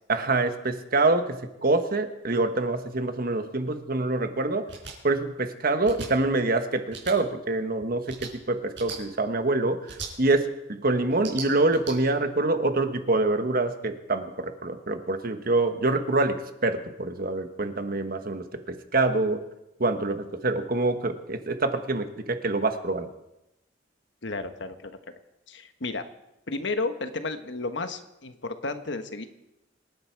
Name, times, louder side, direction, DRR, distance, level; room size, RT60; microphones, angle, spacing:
voice 1, 0.1-4.7 5.0-19.4 19.8-23.1, right 2 dB, 55° right, 8 dB, 1.4 m, -26 dB
sound 1, 4.7-4.9 5.8-6.1 6.9-7.1 8.0-8.3 8.7-9.0 9.9-10.1 11.1-11.9, right 5 dB, 75° right, 5.5 m, -38 dB
voice 2, 24.2-25.0 25.5-26.0 26.5-29.3, left 3 dB, 75° left, 8 dB, 1.3 m, -32 dB
26.5 x 10.5 x 4.7 m, 0.91 s
head